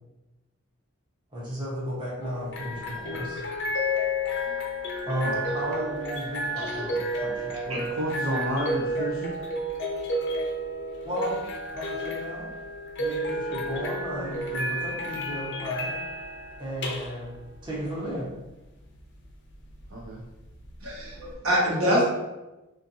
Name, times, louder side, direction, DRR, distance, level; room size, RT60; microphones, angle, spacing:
voice 1, 1.3-3.4 5.1-6.8 7.2-7.4 11.0-12.5 13.0-15.9 16.6-17.4 17.6-18.3, equal, 20° right, -7 dB, 1.1 m, -34 dB
sound 1, 2.2-21.3, equal, 55° left, 0.6 m, -32 dB
voice 2, 6.6-7.8 20.8-22.0, equal, 85° right, -4 dB, 1.1 m, -27 dB
voice 3, 7.7-9.3 19.9-20.2, right 1 dB, 60° right, -4 dB, 0.6 m, -30 dB
4.3 x 2.5 x 2.7 m, 1.0 s
head